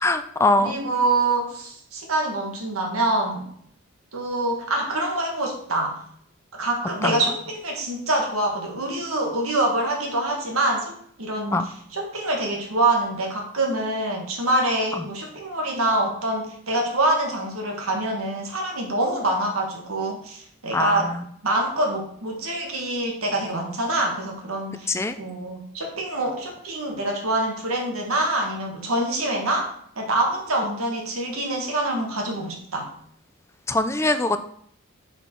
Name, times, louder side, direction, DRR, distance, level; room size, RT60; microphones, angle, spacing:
voice 1, 0.0-0.8 7.0-7.2 11.5-11.6 20.7-21.0 24.9-25.1 33.7-34.4, left 2 dB, 10° left, 9 dB, 0.3 m, -22 dB
voice 2, 0.6-3.5 4.1-6.0 6.5-10.9 11.2-21.1 21.4-32.9, right 2 dB, 80° right, 1 dB, 1.6 m, -25 dB
6.3 x 5.4 x 4.4 m, 0.66 s
head